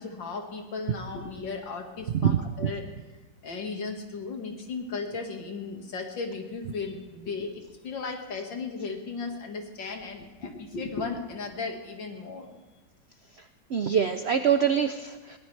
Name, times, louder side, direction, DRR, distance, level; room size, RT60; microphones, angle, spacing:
voice 1, 0.0-2.8 3.4-12.5, left 4 dB, 85° left, 3 dB, 2.5 m, -36 dB
voice 2, 2.1-2.7 13.7-15.4, right 8 dB, 85° right, 9 dB, 0.5 m, -25 dB
22.0 x 17.5 x 3.3 m, 1.2 s
omnidirectional pair, 2.0 m